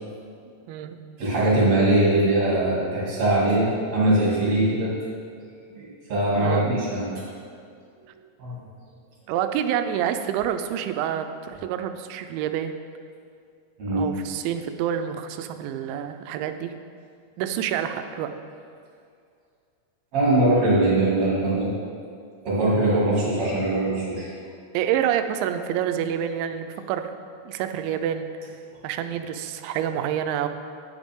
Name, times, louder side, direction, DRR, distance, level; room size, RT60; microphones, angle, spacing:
voice 1, 0.7-1.0 6.4-6.7 9.3-12.8 13.9-16.7 17.4-18.3 24.7-27.1 27.5-28.5 28.8-30.5, right 9 dB, 90° right, 8 dB, 2.9 m, -27 dB
voice 2, 1.2-4.9 5.7-7.2 8.4-8.6 13.8-14.0 20.1-21.7 22.4-24.3, right 1 dB, 45° right, -7 dB, 3.2 m, -21 dB
10.0 x 9.0 x 3.6 m, 2.3 s
omnidirectional pair, 5.2 m